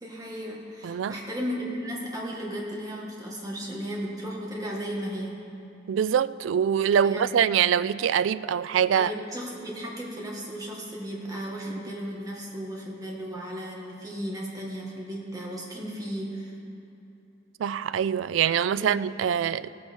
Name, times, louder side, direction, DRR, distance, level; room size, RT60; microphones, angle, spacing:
voice 1, 0.0-5.3 7.0-7.3 8.9-16.6 18.8-19.0, equal, 20° right, -3 dB, 1.9 m, -35 dB
voice 2, 0.8-1.2 5.9-9.1 17.6-19.7, right 8 dB, 85° right, 16 dB, 0.3 m, -24 dB
17.5 x 8.5 x 4.5 m, 2.9 s
head